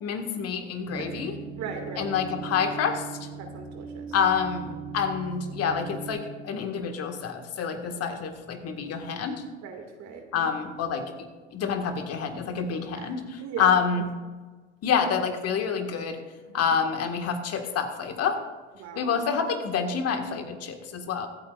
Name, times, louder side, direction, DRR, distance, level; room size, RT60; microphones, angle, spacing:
voice 1, 0.0-1.4 2.0-3.1 4.1-9.4 10.3-11.0 11.5-14.1 14.8-16.2 16.5-18.4 19.0-21.3, left 6 dB, 45° left, 5 dB, 1.8 m, -27 dB
sound 1, 0.9-6.1, right 5 dB, 20° right, 4.1 m, -39 dB
voice 2, 1.6-2.1 3.4-4.1 9.6-10.5 13.0-13.1 13.4-13.7 16.5-16.8 18.8-19.1, right 6 dB, 50° right, 4 dB, 2.3 m, -38 dB
24.0 x 8.8 x 2.5 m, 1.4 s
hypercardioid pair, 80°, 35 cm